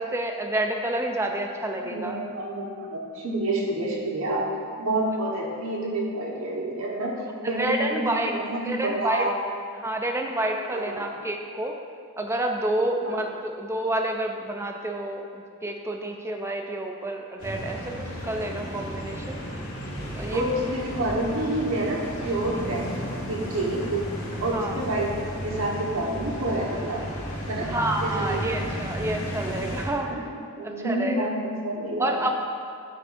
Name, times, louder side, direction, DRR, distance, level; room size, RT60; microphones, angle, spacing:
voice 1, 0.0-2.2 7.4-8.3 8.6-9.3 9.8-11.8 12.2-19.4 20.1-20.4 24.5-24.7 27.6-30.1 30.8-31.3 32.0-32.4, right 1 dB, 10° right, 3 dB, 0.6 m, -29 dB
voice 2, 1.8-4.5 4.8-9.3 10.7-11.1 13.0-13.3 20.3-24.0 24.4-27.0 27.5-27.7 28.0-28.6 30.0-30.2 30.6-32.2, right 1 dB, 70° right, -3 dB, 1.4 m, -28 dB
sound 1, 17.4-29.8, equal, 70° left, 2.2 m, -34 dB
9.8 x 8.0 x 2.6 m, 2.2 s
head